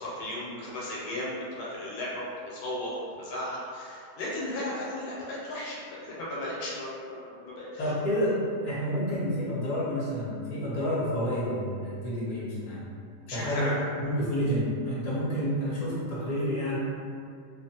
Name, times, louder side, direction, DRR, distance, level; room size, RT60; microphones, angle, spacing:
voice 1, 0.0-2.1 2.4-2.9 3.2-7.7 13.3-13.8, left 1 dB, 75° left, -6 dB, 1.1 m, -35 dB
voice 2, 7.8-12.9 13.3-16.8, equal, 35° left, -9 dB, 0.7 m, -29 dB
2.4 x 2.4 x 2.7 m, 2.4 s
omnidirectional pair, 1.7 m